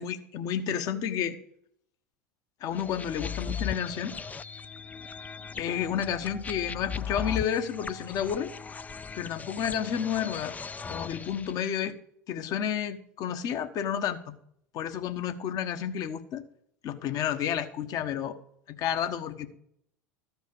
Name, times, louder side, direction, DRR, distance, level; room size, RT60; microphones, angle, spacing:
voice 1, 0.0-1.4 2.6-4.2 5.6-8.5 9.1-10.6 10.9-12.0 12.3-14.4 14.7-16.4 16.8-18.4 18.7-19.5, left 9 dB, 45° left, 9 dB, 1.3 m, -31 dB
sound 1, 2.8-11.6, left 6 dB, 20° left, 0.5 m, -38 dB
13.5 x 5.2 x 7.8 m, 0.69 s
hypercardioid pair, 85°, 8 cm